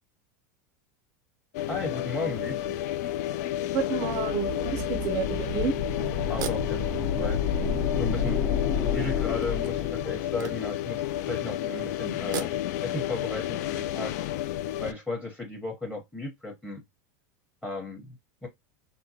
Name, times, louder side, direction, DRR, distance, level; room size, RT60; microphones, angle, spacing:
Cruiseship - inside crew area staircase, 1.5-14.9, left 13 dB, 65° left, 0.3 m, -31 dB
voice 1, 1.7-2.7 6.3-7.4 8.0-8.4 8.8-12.5 12.8-14.1 14.8-16.8 17.6-18.2 18.4-18.5, left 2 dB, 5° left, 0.9 m, -35 dB
voice 2, 3.7-5.7 9.0-9.1, right 6 dB, 40° right, 0.5 m, -30 dB
sound 1, 4.0-10.4, left 6 dB, 45° left, 0.8 m, -30 dB
sound 2, 6.2-7.6 8.2-8.3 9.4-11.0 12.1-13.0, right 9 dB, 85° right, 0.6 m, -39 dB
3.6 x 2.1 x 2.8 m
supercardioid pair, 130°, 10 cm